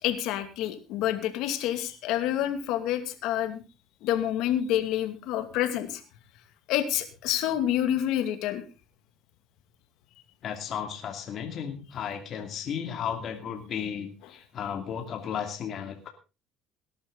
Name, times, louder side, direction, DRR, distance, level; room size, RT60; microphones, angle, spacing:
voice 1, 0.0-3.6 4.0-6.0 6.7-8.6, left 11 dB, 75° left, 9 dB, 2.3 m, -28 dB
voice 2, 10.4-16.1, left 8 dB, 50° left, 4 dB, 2.5 m, -34 dB
18.5 x 11.0 x 3.9 m, 0.30 s
cardioid pair, 120°, 0 cm